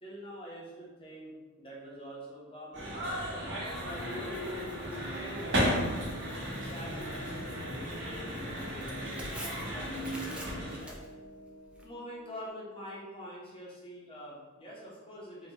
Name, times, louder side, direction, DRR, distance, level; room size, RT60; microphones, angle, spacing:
voice 1, 0.0-3.0 3.4-5.7 6.5-8.0 8.3-11.0 11.8-15.5, equal, 25° left, -6 dB, 0.9 m, -46 dB
sound 1, 2.7-10.8, equal, 60° right, 1.0 m, -35 dB
Tearing, 3.6-11.9, right 1 dB, 5° right, 0.3 m, -50 dB
sound 2, 5.3-12.5, left 1 dB, 45° left, 0.5 m, -49 dB
3.7 x 2.3 x 2.8 m, 1.3 s
head